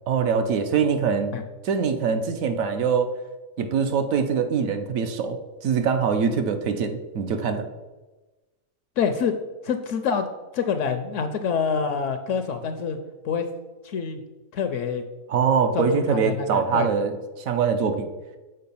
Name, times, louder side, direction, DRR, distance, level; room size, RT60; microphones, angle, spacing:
voice 1, 0.1-1.4 1.6-3.1 3.6-7.7 15.3-18.1, right 6 dB, 70° right, 7 dB, 1.0 m, -23 dB
voice 2, 9.0-9.3 9.6-10.3 10.5-13.0 13.2-13.5 13.8-14.2 14.5-15.0 15.7-16.9, left 6 dB, 70° left, 8 dB, 0.8 m, -26 dB
6.6 x 4.4 x 5.4 m, 1.2 s
omnidirectional pair, 1.5 m